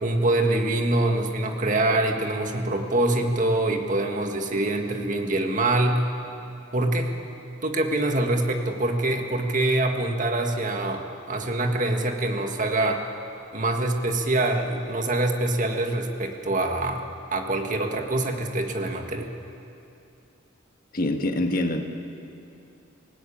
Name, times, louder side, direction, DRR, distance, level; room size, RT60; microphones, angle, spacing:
voice 1, 0.0-6.0 6.7-7.1 7.6-13.0 13.5-17.0 17.3-19.3, right 2 dB, 40° right, 3 dB, 1.8 m, -24 dB
voice 2, 20.9-21.8, left 1 dB, 45° left, 4 dB, 1.7 m, -25 dB
26.5 x 18.0 x 8.7 m, 2.7 s
head